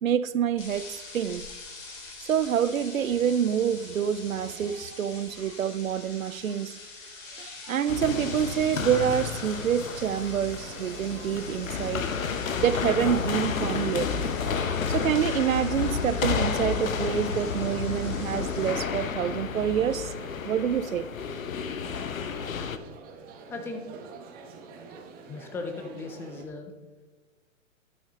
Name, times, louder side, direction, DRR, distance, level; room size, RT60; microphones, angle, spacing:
voice 1, 0.0-1.4 2.2-6.8 7.4-12.1 12.6-14.1 14.9-20.1 20.4-21.1, right 9 dB, 85° right, 0.7 m, -27 dB
sound 1, 0.6-18.7, left 3 dB, 40° left, 3.2 m, -44 dB
sound 2, 7.9-22.8, left 6 dB, 80° left, 1.0 m, -31 dB
sound 3, 9.0-26.4, right 4 dB, 20° right, 1.3 m, -48 dB
voice 2, 23.5-23.9 25.3-26.7, left 3 dB, 5° left, 0.4 m, -37 dB
12.0 x 9.4 x 3.7 m
hypercardioid pair, 130°, 40 cm